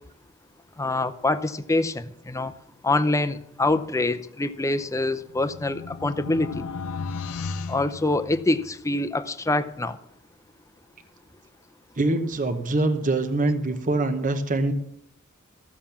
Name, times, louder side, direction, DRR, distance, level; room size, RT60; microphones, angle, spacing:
voice 1, 0.8-2.5 2.8-6.7 7.7-10.0, left 2 dB, 15° left, 11 dB, 0.6 m, -25 dB
sound 1, 4.8-8.8, left 4 dB, 90° left, 0.7 m, -35 dB
voice 2, 12.0-14.7, right 2 dB, 40° right, 8 dB, 1.0 m, -24 dB
14.5 x 7.4 x 7.2 m, 0.77 s
head